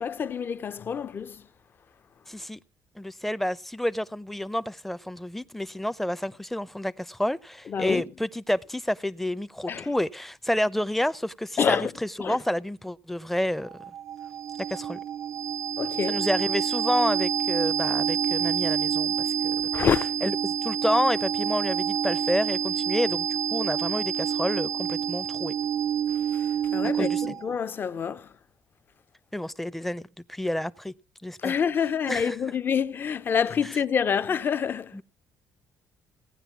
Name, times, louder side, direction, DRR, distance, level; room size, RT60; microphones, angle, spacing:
voice 1, 0.0-1.4 7.7-8.0 9.7-9.9 11.6-11.9 12.2-12.4 15.8-16.2 19.7-20.1 26.3-26.5 26.7-28.3 31.4-35.0, left 7 dB, 35° left, 0.8 m, -27 dB
voice 2, 2.3-2.6 3.0-13.7 14.7-15.0 16.1-19.9 20.2-25.5 26.9-27.4 29.3-30.0 30.3-30.9 31.2-31.6 32.1-32.4 34.9-35.0, left 1 dB, 5° left, 0.6 m, -29 dB
sound 1, 13.7-27.5, right 9 dB, 60° right, 0.6 m, -28 dB
17.0 x 9.9 x 6.0 m
cardioid pair, 120°, 6 cm